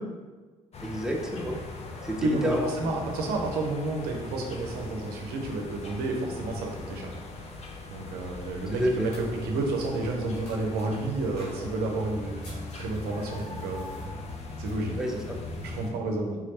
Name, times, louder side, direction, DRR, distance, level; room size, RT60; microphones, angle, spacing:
sound 1, 0.7-15.9, left 3 dB, 40° left, 0.7 m, -40 dB
voice 1, 0.8-1.6 2.0-2.7 8.7-9.1 15.0-15.4, equal, 5° right, 0 dB, 0.7 m, -29 dB
voice 2, 2.2-7.1 7.9-13.9 14.6-14.9 15.6-16.4, right 2 dB, 70° right, 1 dB, 0.6 m, -30 dB
sound 2, 9.0-10.8 11.4-11.9 12.4-14.0, left 1 dB, 80° left, 1.2 m, -51 dB
3.6 x 3.1 x 3.0 m, 1.3 s
hypercardioid pair, 50°, 17 cm